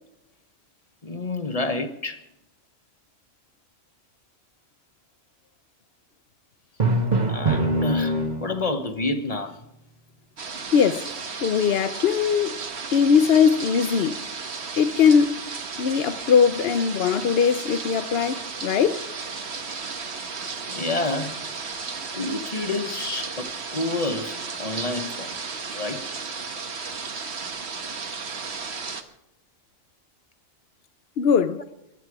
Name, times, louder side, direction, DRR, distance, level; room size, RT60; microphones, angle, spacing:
voice 1, 1.0-2.2 7.3-9.6 20.7-21.4 22.1-25.3 25.7-26.0, left 2 dB, 30° left, 1.2 m, -29 dB
Drum, 6.8-8.8, right 2 dB, 35° right, 1.5 m, -23 dB
sound 1, 10.4-29.0, right 5 dB, 55° right, 1.5 m, -34 dB
voice 2, 10.7-11.1 11.4-12.5 12.9-14.2 14.8-15.4 15.8-19.0 31.2-31.6, left 7 dB, 55° left, 0.9 m, -20 dB
22.5 x 11.0 x 4.8 m
omnidirectional pair, 1.3 m